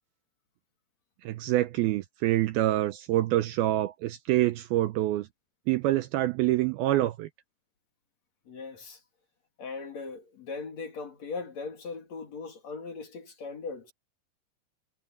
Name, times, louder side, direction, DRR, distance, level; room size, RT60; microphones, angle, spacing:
voice 1, 1.2-5.3 5.7-7.3, right 15 dB, 80° right, 2.3 m, -26 dB
voice 2, 8.5-9.0 9.6-13.9, left 4 dB, 45° left, 3.6 m, -39 dB
omnidirectional pair, 4.8 m